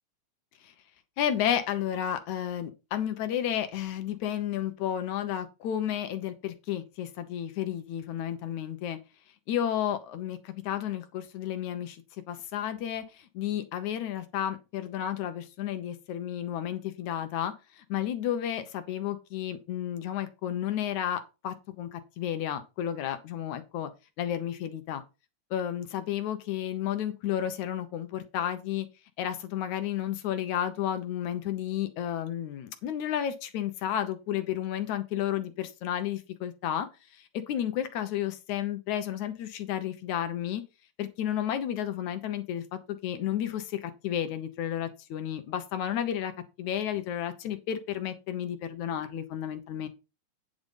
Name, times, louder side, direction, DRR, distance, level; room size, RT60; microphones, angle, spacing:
voice 1, 1.2-9.0 9.5-12.0 12.3-13.0 13.3-23.9 24.2-25.0 25.5-28.9 29.2-36.9 37.2-40.6 41.0-46.3 46.6-49.9, left 10 dB, 70° left, 9 dB, 2.3 m, -32 dB
9.7 x 5.2 x 5.3 m, 0.28 s
omnidirectional pair, 3.6 m